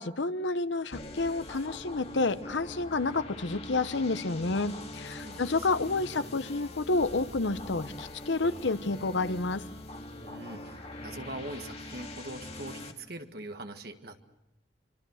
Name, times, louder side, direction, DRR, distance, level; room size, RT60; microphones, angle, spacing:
voice 1, 0.0-9.6, left 3 dB, 90° left, 13 dB, 0.9 m, -30 dB
sound 1, 0.9-12.9, left 1 dB, 35° left, 1.9 m, -43 dB
voice 2, 5.1-6.1 10.2-14.2, right 1 dB, 60° right, 6 dB, 1.8 m, -43 dB
25.5 x 25.0 x 6.5 m, 0.91 s
head